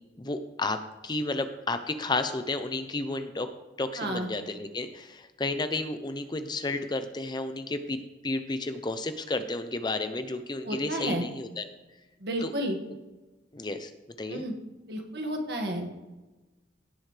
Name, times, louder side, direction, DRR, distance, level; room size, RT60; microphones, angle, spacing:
voice 1, 0.2-3.5 3.8-11.7 12.4-12.5 13.5-13.9 14.2-14.4, left 2 dB, 25° left, 9 dB, 0.6 m, -32 dB
voice 2, 4.0-4.3 10.7-11.2 12.2-12.8 14.3-14.5 14.9-15.9, right 1 dB, 60° right, 3 dB, 1.8 m, -31 dB
17.0 x 7.8 x 3.3 m, 1.2 s
head